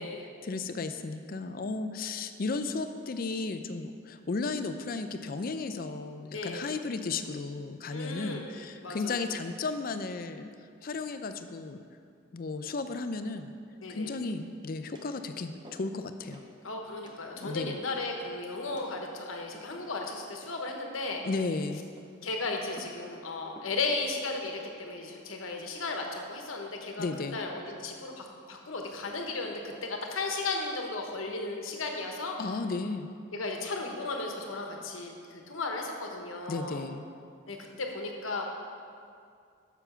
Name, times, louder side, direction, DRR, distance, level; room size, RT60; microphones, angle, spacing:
voice 1, 0.4-10.5 10.8-11.8 12.3-13.5 13.9-16.4 17.4-17.8 21.2-21.9 27.0-27.4 32.4-33.1 36.5-37.1, left 3 dB, 45° left, 9 dB, 0.4 m, -34 dB
voice 2, 6.3-6.7 7.9-8.5 8.8-9.2 13.8-14.1 16.6-21.2 22.2-32.4 33.3-36.8 37.5-38.5, left 3 dB, 80° left, 2 dB, 1.1 m, -35 dB
sound 1, 14.2-14.6 14.9-15.2 15.6-16.0 16.3-16.6 17.0-17.2 17.9-18.2 18.7-19.0 19.5-20.0 20.4-20.8 21.2-21.5 22.0-22.3 22.8-23.0 23.5-23.8 24.3-24.6 25.2-25.6, right 1 dB, 20° right, 0.7 m, -53 dB
7.0 x 6.9 x 5.6 m, 2.3 s
head